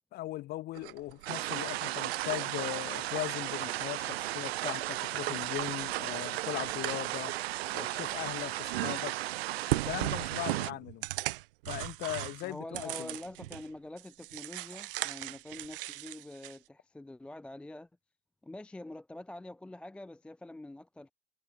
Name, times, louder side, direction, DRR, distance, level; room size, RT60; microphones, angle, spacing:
voice 1, 0.1-7.3 7.7-9.1 9.7-11.0 11.7-13.1, left 16 dB, 30° left, 2.8 m, -39 dB
sound 1, 0.8-3.3 3.6-4.3 4.6-8.4 8.7-9.3 9.7-13.7 14.0-16.6, right 19 dB, 60° right, 2.9 m, -38 dB
sound 2, 1.3-10.7, right 16 dB, 85° right, 0.6 m, -35 dB
voice 2, 12.4-17.9 18.4-21.1, left 1 dB, 5° left, 0.7 m, -45 dB
supercardioid pair, 150°, 31 cm